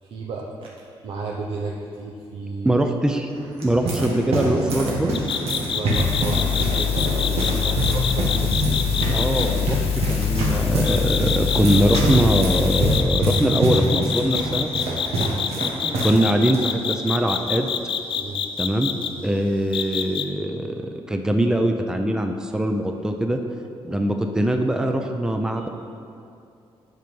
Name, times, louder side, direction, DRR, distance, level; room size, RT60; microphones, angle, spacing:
voice 1, 0.0-2.7 5.7-8.5 9.1-9.2 15.2-15.5 18.1-18.5 19.2-19.3 23.9-24.0 25.6-25.7, right 3 dB, 60° right, -2 dB, 0.7 m, -33 dB
voice 2, 2.6-3.3 3.6-5.2 9.1-9.8 10.1-14.7 15.8-17.7 18.6-18.9 19.2-23.4 23.8-25.7, right 1 dB, 5° right, 4 dB, 0.5 m, -22 dB
sound 1, 3.3-16.2 16.4-16.6 17.3-17.6, right 1 dB, 85° right, 1.5 m, -25 dB
sound 2, 5.1-9.5 10.8-19.1 19.7-20.2, left 7 dB, 55° left, 0.6 m, -26 dB
sound 3, 5.9-13.0, left 8 dB, 80° left, 0.9 m, -25 dB
8.0 x 5.8 x 5.4 m, 2.5 s
cardioid pair, 120°, 10 cm